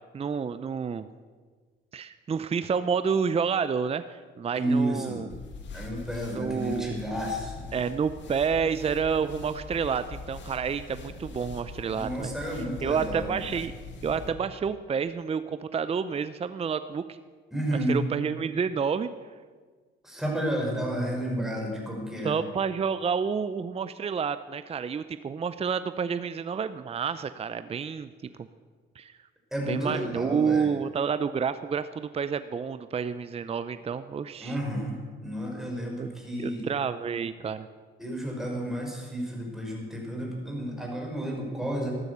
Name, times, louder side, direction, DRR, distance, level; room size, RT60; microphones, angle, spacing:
voice 1, 0.1-1.1 1.9-5.3 6.3-7.0 7.7-12.3 12.8-13.7 14.0-17.2 17.7-19.1 22.2-28.5 29.0-29.2 29.7-34.6 36.0-36.1 36.4-37.7, right 6 dB, 30° right, 12 dB, 0.6 m, -29 dB
voice 2, 4.6-5.3 5.7-7.7 11.8-13.3 17.5-18.0 20.0-22.4 29.5-30.7 34.4-36.7 38.0-41.9, right 1 dB, ahead, -1 dB, 5.3 m, -31 dB
sound 1, 5.3-14.3, left 4 dB, 65° left, 2.0 m, -42 dB
13.5 x 12.5 x 6.8 m, 1.5 s
cardioid pair, 90°, 20 cm